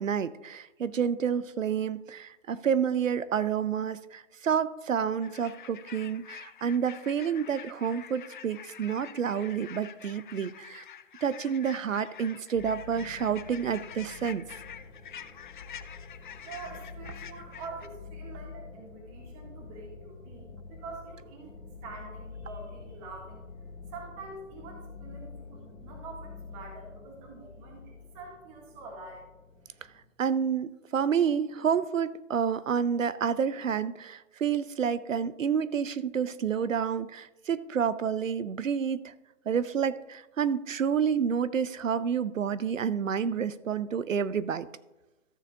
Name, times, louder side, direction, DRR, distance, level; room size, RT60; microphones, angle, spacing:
voice 1, 0.0-10.8 11.2-14.4 30.2-39.1 39.5-44.7, right 7 dB, 80° right, 16 dB, 0.6 m, -29 dB
sound 1, 5.2-17.9, left 9 dB, 40° left, 0.5 m, -47 dB
sound 2, 12.6-30.0, left 4 dB, 70° left, 2.3 m, -47 dB
voice 2, 16.4-21.5 21.8-23.5 23.9-29.3, right 3 dB, 30° right, -1 dB, 1.8 m, -45 dB
13.5 x 6.9 x 2.8 m, 1.0 s
figure-of-eight pair, 130°, 38 cm